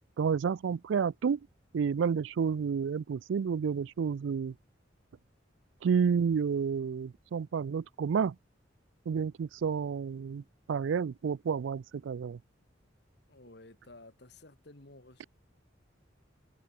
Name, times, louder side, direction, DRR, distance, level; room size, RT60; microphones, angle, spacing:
voice 1, 0.2-1.4 1.7-4.5 5.8-8.3 9.1-10.4 10.7-12.4, right 6 dB, 80° right, 0.4 m, -30 dB
voice 2, 13.3-15.3, left 2 dB, 60° left, 2.4 m, -53 dB
head